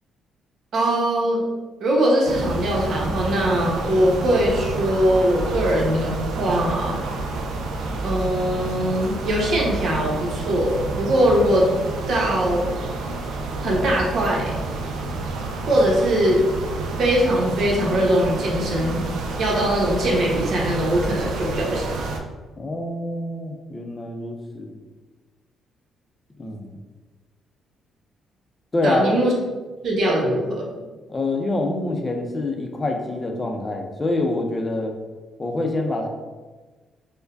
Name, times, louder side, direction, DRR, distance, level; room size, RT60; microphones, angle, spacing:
voice 1, 0.7-1.4 1.8-6.9 8.0-11.7 12.1-12.7 13.6-14.5 15.7-16.4 17.0-19.0 19.4-21.9 28.8-29.3 29.8-30.7, right 1 dB, 65° right, -2 dB, 1.0 m, -21 dB
sound 1, 2.2-22.2, right 3 dB, 80° right, 0.4 m, -29 dB
voice 2, 22.6-24.8 26.4-26.8 28.7-29.1 31.1-34.9 35.4-36.1, left 2 dB, 25° left, 3 dB, 0.6 m, -26 dB
4.8 x 2.2 x 2.5 m, 1.3 s
cardioid pair, 90°, 0 cm